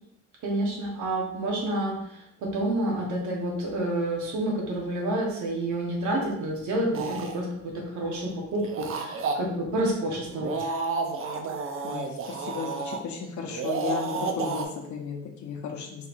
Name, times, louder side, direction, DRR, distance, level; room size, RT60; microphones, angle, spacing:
voice 1, 0.4-10.8, right 1 dB, 75° right, -1 dB, 1.0 m, -29 dB
sound 1, 6.9-7.4 8.5-9.3 10.3-13.0 13.5-14.7, right 4 dB, 45° right, 0.5 m, -31 dB
voice 2, 11.8-16.1, left 5 dB, 70° left, 1 dB, 0.8 m, -34 dB
4.0 x 2.7 x 2.5 m, 0.78 s
cardioid pair, 90°, 30 cm